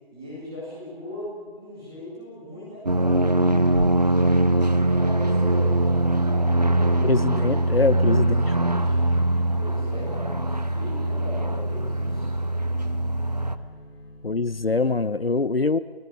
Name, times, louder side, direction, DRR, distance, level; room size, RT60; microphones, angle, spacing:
voice 1, 0.1-7.5 8.2-9.0 9.5-12.3, left 1 dB, 5° right, -8 dB, 2.1 m, -39 dB
sound 1, 2.9-13.6, right 1 dB, 40° right, 1.2 m, -22 dB
voice 2, 7.0-8.4 14.2-15.8, left 3 dB, 65° left, 14 dB, 1.0 m, -23 dB
sound 2, 8.7-15.0, left 1 dB, 25° left, 3.5 m, -45 dB
29.0 x 17.0 x 9.1 m, 1.5 s
figure-of-eight pair, 175°, 31 cm